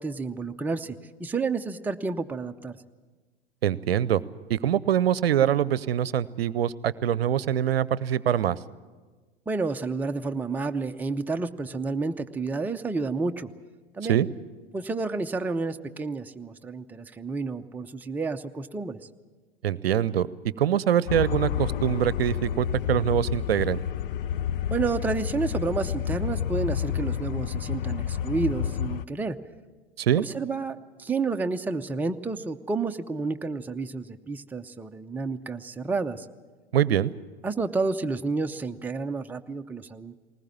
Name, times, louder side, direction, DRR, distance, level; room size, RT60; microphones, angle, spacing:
voice 1, 0.0-2.7 9.5-13.5 13.9-14.3 14.7-19.0 24.7-29.4 30.3-36.3 37.4-40.2, right 4 dB, 5° right, 5 dB, 0.6 m, -30 dB
voice 2, 3.6-4.2 4.5-8.6 14.1-14.3 19.6-20.3 20.6-23.8 30.0-30.2 36.7-37.1, right 10 dB, 70° right, 20 dB, 0.7 m, -24 dB
sound 1, 21.1-29.1, left 9 dB, 60° left, 0.6 m, -29 dB
19.5 x 19.5 x 8.7 m, 1.4 s
figure-of-eight pair, 85°, 32 cm